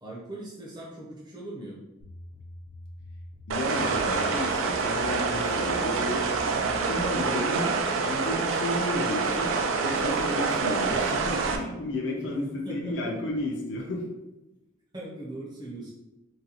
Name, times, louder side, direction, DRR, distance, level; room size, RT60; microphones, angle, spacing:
voice 1, 0.0-1.8 12.1-12.3 12.6-12.9 14.9-15.9, right 1 dB, 20° right, -5 dB, 0.6 m, -40 dB
sound 1, 2.0-7.3, equal, 85° left, 0.8 m, -45 dB
voice 2, 3.5-6.3 6.6-7.8 8.0-14.1, left 1 dB, 60° left, -1 dB, 0.5 m, -32 dB
sound 2, 3.5-11.6, right 4 dB, 85° right, 0.4 m, -27 dB
3.9 x 2.3 x 2.8 m, 1.0 s
head